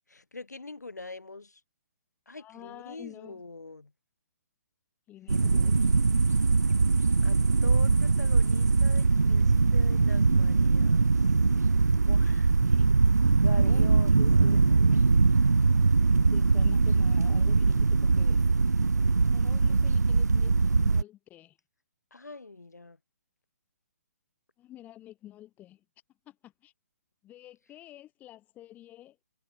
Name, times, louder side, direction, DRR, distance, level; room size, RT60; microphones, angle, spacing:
voice 1, 0.1-1.6 2.3-3.9 7.2-11.3 12.0-12.5 13.4-14.6 15.8-15.9 22.1-23.0, left 3 dB, 80° left, 7.6 m, -44 dB
voice 2, 2.4-3.4 5.1-5.9 12.7-12.9 13.6-15.2 16.3-18.4 19.2-21.6 24.6-25.8 26.2-26.7 27.2-29.2, left 13 dB, 20° left, 5.1 m, -49 dB
sound 1, 5.3-21.0, right 4 dB, 80° right, 1.0 m, -22 dB
figure-of-eight pair, 135°, 9 cm